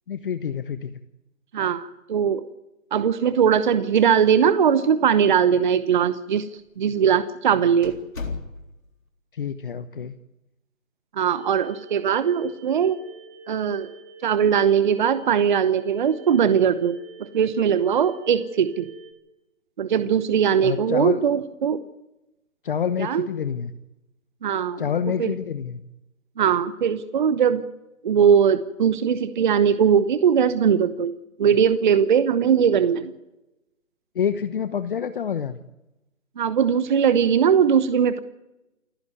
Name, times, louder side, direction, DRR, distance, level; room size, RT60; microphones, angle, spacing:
voice 1, 0.1-0.9 9.3-10.1 20.6-21.2 22.6-23.7 24.8-25.8 34.1-35.6, left 7 dB, 40° left, 11 dB, 1.0 m, -27 dB
voice 2, 1.5-2.4 2.9-6.5 6.8-8.0 11.1-13.0 13.5-13.9 14.2-18.9 19.8-21.8 23.0-23.2 24.4-24.8 25.2-25.3 26.4-27.6 28.0-31.1 31.4-33.1 36.4-38.2, right 7 dB, 35° right, 13 dB, 1.0 m, -20 dB
sound 1, 3.8-4.6 4.8-4.9 5.7-5.8 6.6-6.8 7.2-7.3 7.8-9.0, left 4 dB, 75° left, 3.9 m, -36 dB
sound 2, 11.3-19.1, right 2 dB, 20° right, 5.1 m, -46 dB
28.5 x 10.5 x 9.4 m, 0.93 s
figure-of-eight pair, 150°, 41 cm